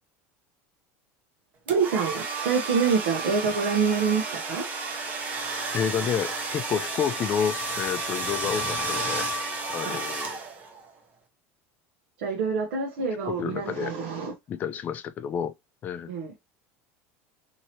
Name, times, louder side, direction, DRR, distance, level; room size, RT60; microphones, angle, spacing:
sound 1, 1.7-10.8, right 2 dB, 25° right, 0.7 m, -32 dB
voice 1, 1.7-4.7 9.8-10.0 12.2-14.3 16.1-16.3, right 5 dB, 85° right, 0.8 m, -26 dB
voice 2, 5.7-9.2 9.7-10.4 13.3-13.9 14.5-15.5 15.8-16.1, left 8 dB, 30° left, 0.4 m, -29 dB
2.9 x 2.8 x 2.8 m
supercardioid pair, 150°, 6 cm